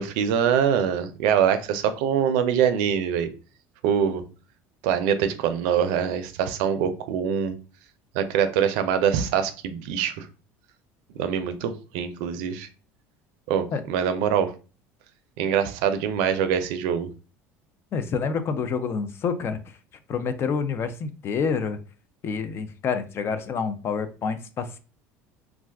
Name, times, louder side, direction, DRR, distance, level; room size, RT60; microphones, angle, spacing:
voice 1, 0.0-3.3 3.8-4.2 4.8-7.6 8.1-10.3 11.2-12.7 13.5-14.5 15.4-17.1, right 8 dB, 80° right, 0.4 m, -24 dB
voice 2, 17.9-19.8 20.1-21.8 22.2-24.8, left 5 dB, 40° left, 0.4 m, -28 dB
2.4 x 2.3 x 3.3 m
supercardioid pair, 115°, 6 cm